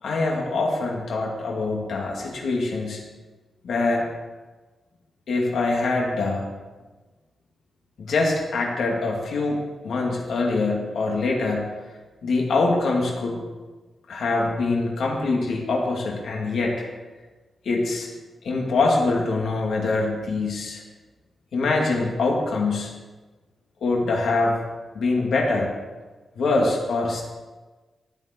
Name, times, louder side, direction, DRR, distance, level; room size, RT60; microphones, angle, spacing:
voice 1, 0.0-3.0 3.6-4.0 5.3-6.5 8.0-9.6 9.8-11.7 12.2-13.4 14.1-16.9 17.6-18.1 18.4-20.8 21.5-22.9 23.8-24.6 24.9-25.7 26.4-27.2, left 3 dB, 75° left, -1 dB, 2.3 m, -24 dB
12.5 x 9.5 x 4.5 m, 1.3 s
wide cardioid pair, 145°, 0 cm